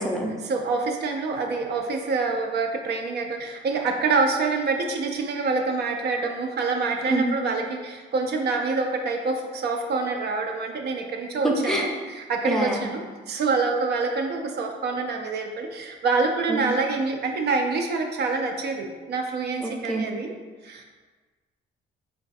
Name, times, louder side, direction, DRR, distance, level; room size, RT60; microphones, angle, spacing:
voice 1, 0.4-20.4 20.6-20.8, right 4 dB, 55° right, 3 dB, 0.4 m, -26 dB
voice 2, 11.4-11.8 12.5-12.8 16.5-16.6 19.9-20.0, right 1 dB, ahead, -1 dB, 0.5 m, -25 dB
3.2 x 2.3 x 4.0 m, 1.4 s
cardioid pair, 90°, 20 cm